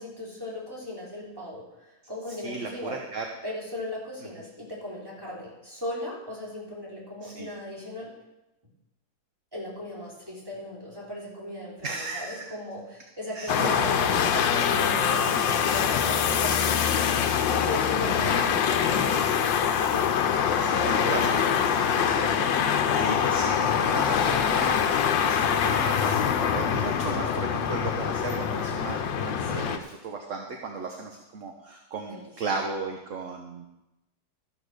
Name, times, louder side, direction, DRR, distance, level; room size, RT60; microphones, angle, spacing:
voice 1, 0.0-3.0 3.4-8.1 9.5-11.9 12.1-19.2 20.2-21.2 29.4-29.8 32.1-32.3, left 1 dB, 10° right, -6 dB, 3.7 m, -37 dB
voice 2, 2.4-3.2 7.2-7.5 11.8-12.4 13.3-13.9 15.3-15.4 18.3-18.4 20.6-26.2 26.5-33.7, right 4 dB, 50° right, 2 dB, 1.2 m, -36 dB
sound 1, 13.5-29.8, left 8 dB, 80° left, 1.5 m, -24 dB
13.0 x 6.2 x 6.6 m, 0.96 s
omnidirectional pair, 2.0 m